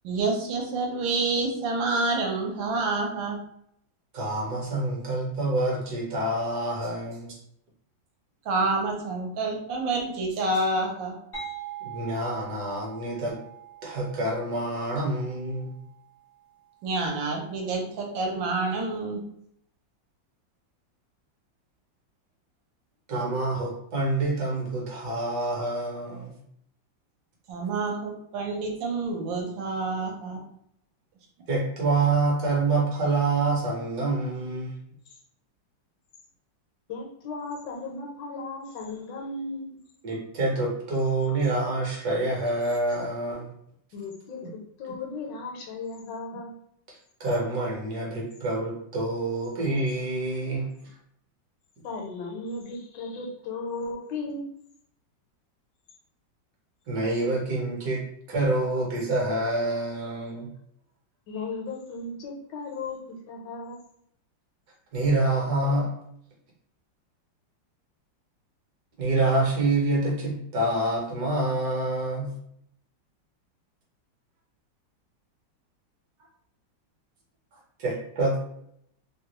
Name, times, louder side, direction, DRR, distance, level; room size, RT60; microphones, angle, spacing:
voice 1, 0.0-3.4 8.5-11.2 16.8-19.2 27.5-30.4, right 3 dB, 80° right, 1 dB, 1.4 m, -28 dB
voice 2, 4.1-7.3 11.8-13.4 13.8-15.7 23.1-26.4 31.5-34.7 40.0-43.5 47.2-50.7 56.9-58.0 58.3-60.5 64.9-65.9 69.0-72.3 77.8-78.4, right 2 dB, 60° right, -2 dB, 1.2 m, -27 dB
sound 1, 11.3-16.8, right 8 dB, 55° left, 0.5 m, -43 dB
voice 3, 36.9-39.8 43.9-46.6 51.8-54.5 61.3-63.8, left 3 dB, 75° left, 0 dB, 1.2 m, -36 dB
3.3 x 2.2 x 2.9 m, 0.71 s
omnidirectional pair, 2.1 m